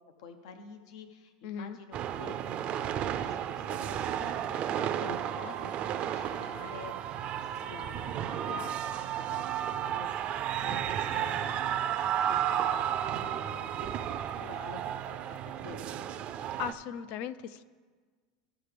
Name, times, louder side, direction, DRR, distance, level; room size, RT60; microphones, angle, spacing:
voice 1, 0.2-16.1, left 4 dB, 75° left, 8 dB, 0.7 m, -49 dB
voice 2, 1.4-1.8 11.1-11.3 16.6-17.6, left 9 dB, 50° left, 15 dB, 0.4 m, -38 dB
sound 1, 1.9-16.7, right 10 dB, 35° right, 0.4 m, -33 dB
14.5 x 5.7 x 3.4 m, 1.5 s
supercardioid pair, 135°, 3 cm